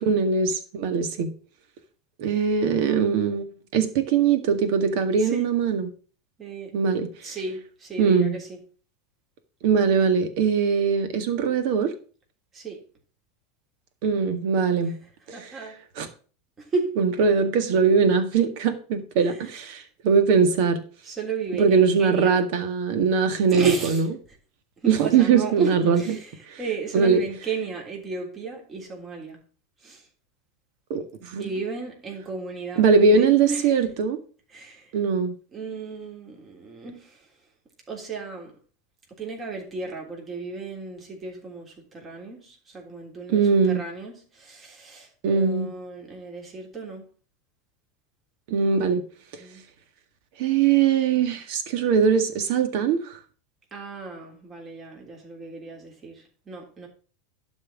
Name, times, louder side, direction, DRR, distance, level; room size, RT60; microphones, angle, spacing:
voice 1, 0.0-1.3 2.2-3.4 3.7-5.9 6.7-7.1 8.0-8.4 9.6-11.9 14.0-15.0 15.3-15.5 16.0-16.1 17.0-20.8 21.6-24.1 24.9-26.2 26.5-26.6 26.9-27.2 30.9-31.5 32.8-34.2 34.9-35.4 43.3-43.8 45.2-45.7 48.5-49.0 50.4-53.1, right 5 dB, 60° right, 1.8 m, -21 dB
voice 2, 5.2-5.6 6.4-6.7 7.2-8.6 12.5-12.8 14.9-15.0 15.3-15.8 16.6-17.0 19.2-19.5 21.0-22.4 23.5-24.0 24.8-29.4 29.8-30.1 31.4-33.8 34.5-34.9 35.5-37.3 37.9-38.6 39.2-47.0 48.8-48.9 49.4-49.6 53.7-56.9, right 4 dB, 30° right, 3.4 m, -34 dB
11.5 x 4.5 x 7.2 m
hypercardioid pair, 85°, 0 cm